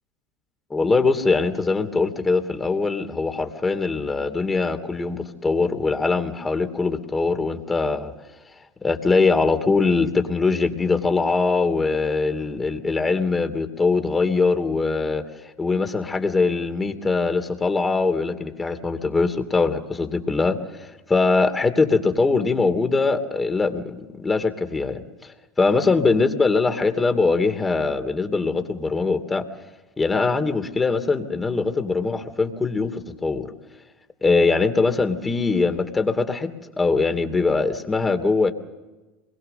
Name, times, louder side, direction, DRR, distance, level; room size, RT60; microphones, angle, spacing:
voice 1, 0.7-8.1 8.8-29.4 30.0-33.5 34.2-38.5, left 4 dB, 20° left, 7 dB, 2.7 m, -22 dB
27.5 x 22.0 x 6.8 m, 1.2 s
hypercardioid pair, 80°, 0 cm